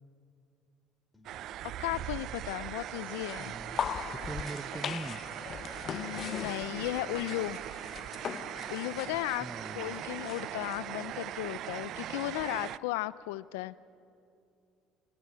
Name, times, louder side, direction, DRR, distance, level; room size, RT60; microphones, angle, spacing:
sound 1, 1.1-1.5 1.8-2.5 2.8-3.5 3.8-4.5 4.8-5.5 5.8-6.5 6.8-7.5 7.8-8.5 8.8-9.1, left 3 dB, 10° left, 4.5 m, -59 dB
sound 2, 1.2-12.8, right 12 dB, 60° right, 0.5 m, -40 dB
voice 1, 1.6-3.5 5.9-7.6 8.7-9.5 9.8-13.8, left 18 dB, 85° left, 17 dB, 0.5 m, -35 dB
sound 3, 3.1-10.8, left 8 dB, 50° left, 0.7 m, -40 dB
voice 2, 3.4-5.2 9.3-10.0, right 3 dB, 15° right, 15 dB, 0.9 m, -42 dB
25.0 x 18.5 x 9.7 m, 2.6 s
supercardioid pair, 80°, 0 cm